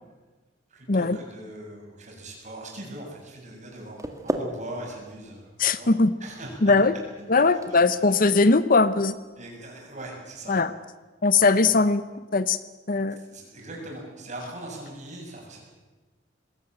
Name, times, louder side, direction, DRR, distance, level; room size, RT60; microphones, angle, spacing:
voice 1, 0.7-5.9 6.2-6.5 7.2-7.3 9.4-10.6 11.6-11.7 13.2-15.6, right 1 dB, 40° right, -1 dB, 7.1 m, -41 dB
sound 1, 3.7-9.6, right 1 dB, 15° right, 1.8 m, -38 dB
voice 2, 5.6-6.1 6.6-6.9 7.3-9.1 10.5-10.7 11.2-12.0 12.3-12.6 12.9-13.2, left 3 dB, 50° left, 15 dB, 0.8 m, -20 dB
21.0 x 17.0 x 9.0 m, 1.2 s
head